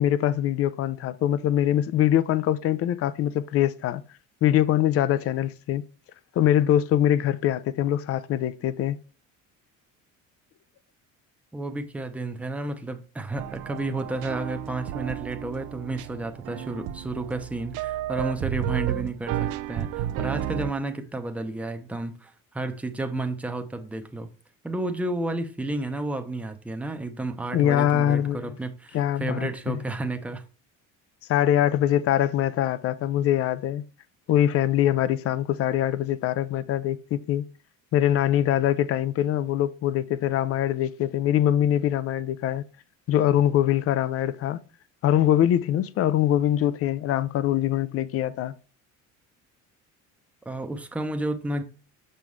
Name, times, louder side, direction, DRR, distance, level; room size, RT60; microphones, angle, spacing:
voice 1, 0.0-4.0 4.4-5.9 6.4-9.0 27.5-28.6 28.9-29.8 31.3-33.8 34.3-37.4 37.9-42.6 43.1-44.6 45.0-48.5, left 11 dB, 50° left, 0.5 m, -23 dB
voice 2, 11.5-24.3 24.6-30.4 50.5-51.6, right 2 dB, 5° right, 0.7 m, -31 dB
sound 1, 13.4-20.7, right 13 dB, 80° right, 0.5 m, -32 dB
6.0 x 5.5 x 3.2 m
cardioid pair, 125°, 31 cm